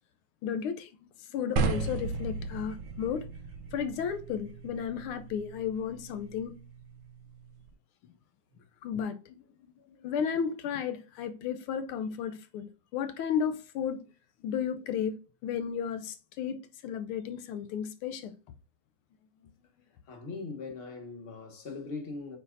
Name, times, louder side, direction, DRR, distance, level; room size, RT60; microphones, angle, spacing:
voice 1, 0.4-0.9 1.2-3.3 3.7-6.6 8.8-9.4 9.9-14.0 14.4-15.2 15.4-18.3, left 7 dB, 80° left, 1.5 m, -33 dB
sound 1, 1.6-7.7, right 4 dB, 65° right, 1.5 m, -36 dB
voice 2, 20.1-22.4, left 4 dB, 30° left, 1.3 m, -40 dB
8.4 x 4.8 x 2.5 m
omnidirectional pair, 2.4 m